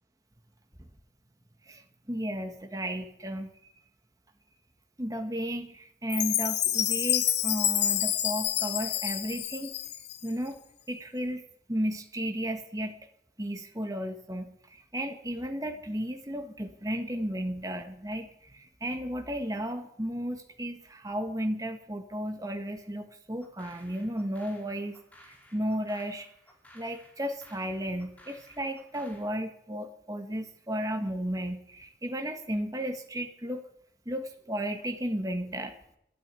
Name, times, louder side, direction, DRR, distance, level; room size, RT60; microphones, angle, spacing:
voice 1, 1.7-3.5 5.0-9.7 10.2-10.6 10.9-11.4 11.7-13.0 13.4-25.0 25.5-26.3 26.7-33.6 34.0-35.7, equal, 20° right, 5 dB, 1.7 m, -34 dB
Chime, 6.1-10.3, left 12 dB, 70° left, 1.1 m, -28 dB
sound 1, 23.4-29.3, equal, 10° left, 3.1 m, -57 dB
12.5 x 10.5 x 9.9 m, 0.72 s
head